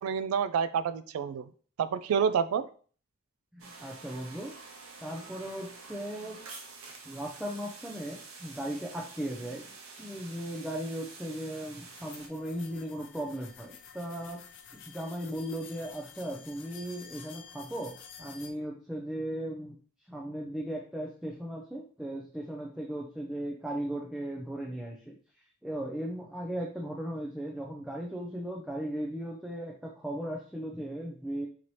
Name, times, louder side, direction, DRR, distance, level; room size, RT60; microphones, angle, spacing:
voice 1, 0.0-1.5 1.8-2.7, right 7 dB, 90° right, 15 dB, 0.3 m, -28 dB
voice 2, 3.5-4.5 5.0-6.5 7.1-9.7 10.0-14.4 14.7-19.7 20.1-25.2 25.6-31.5, right 1 dB, 5° right, -2 dB, 0.4 m, -37 dB
sound 1, 3.6-12.3, right 4 dB, 70° right, 0.8 m, -48 dB
sound 2, 11.9-18.5, left 7 dB, 60° left, 0.5 m, -50 dB
4.0 x 2.8 x 3.1 m, 0.43 s
head